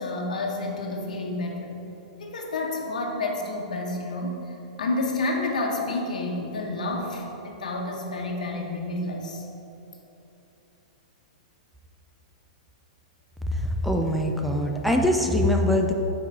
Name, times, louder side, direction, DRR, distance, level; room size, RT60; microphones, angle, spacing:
voice 1, 0.0-1.8 2.2-9.4, left 2 dB, 80° left, 0 dB, 1.1 m, -30 dB
voice 2, 13.5-15.9, left 1 dB, ahead, 1 dB, 0.5 m, -23 dB
5.6 x 4.7 x 6.2 m, 2.9 s
hypercardioid pair, 120°, 4 cm